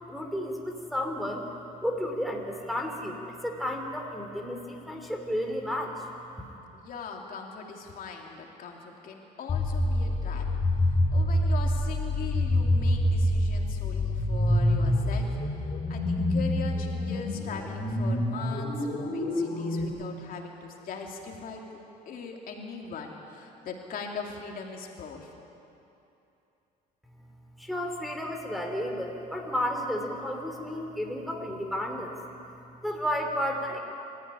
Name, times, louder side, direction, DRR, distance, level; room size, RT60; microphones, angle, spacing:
voice 1, 0.1-1.4 1.8-6.1 6.4-6.5 27.6-32.1 32.8-33.8, equal, ahead, 1 dB, 3.2 m, -32 dB
voice 2, 6.7-10.5 11.1-15.4 15.9-21.8 22.0-25.3, left 5 dB, 55° left, 1 dB, 3.0 m, -40 dB
sound 1, 9.5-19.9, left 1 dB, 40° left, 5.1 m, -26 dB
25.0 x 14.5 x 9.9 m, 2.8 s
cardioid pair, 110°, 17 cm